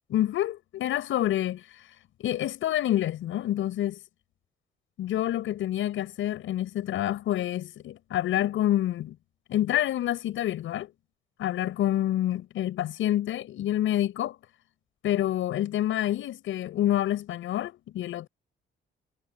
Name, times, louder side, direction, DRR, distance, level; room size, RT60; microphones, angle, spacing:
voice 1, 0.1-1.6 2.2-4.0 5.0-9.1 9.5-10.9 11.4-14.4 15.0-18.3, left 13 dB, 80° left, 7.9 m, -27 dB
cardioid pair, 90°, 20 cm